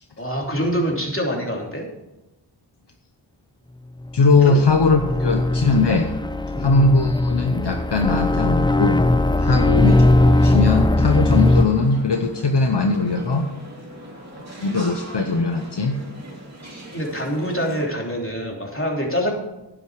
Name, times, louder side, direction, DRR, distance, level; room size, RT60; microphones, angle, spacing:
voice 1, 0.2-1.9 4.4-4.7 5.2-5.3 6.5-6.7 9.5-9.7 16.9-19.3, equal, 30° left, -1 dB, 3.2 m, -25 dB
voice 2, 4.1-6.1 6.6-9.0 9.4-13.5 14.6-16.0, left 3 dB, 65° left, 5 dB, 0.9 m, -20 dB
sound 1, 4.2-11.7, left 1 dB, 10° left, 0.6 m, -19 dB
sound 2, 9.7-17.9, right 1 dB, 35° right, 2.7 m, -40 dB
10.5 x 10.0 x 4.8 m, 0.96 s
wide cardioid pair, 50°, 45 cm